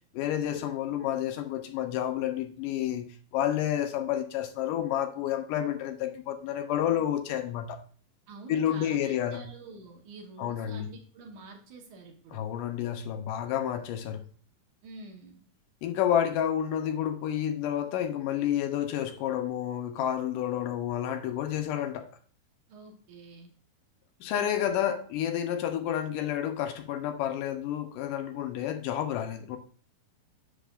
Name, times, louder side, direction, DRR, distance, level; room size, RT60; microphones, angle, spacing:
voice 1, 0.1-7.8 8.5-9.5 10.4-10.9 12.3-14.2 15.8-22.1 24.2-29.6, left 10 dB, 80° left, 8 dB, 2.2 m, -30 dB
voice 2, 8.3-12.4 14.8-15.4 22.7-23.5, right 3 dB, 65° right, 2 dB, 2.4 m, -47 dB
11.0 x 6.6 x 2.4 m, 0.41 s
omnidirectional pair, 4.0 m